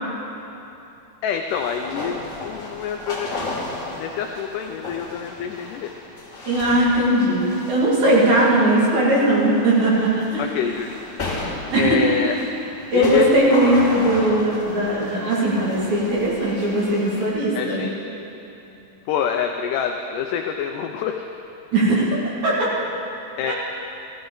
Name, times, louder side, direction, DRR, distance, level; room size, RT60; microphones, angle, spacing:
voice 1, 1.2-3.7 4.0-5.9 10.4-11.0 11.7-12.4 12.9-13.3 17.5-17.9 19.1-21.3 23.4-23.5, left 8 dB, 85° left, 4 dB, 1.9 m, -26 dB
sound 1, 1.5-17.3, left 2 dB, 25° left, 2.5 m, -34 dB
voice 2, 6.4-10.4 11.7-12.0 12.9-17.8 21.7-22.1 22.4-22.7 23.5-23.6, right 1 dB, 55° right, -6 dB, 3.3 m, -19 dB
15.0 x 14.5 x 3.9 m, 2.9 s
omnidirectional pair, 4.3 m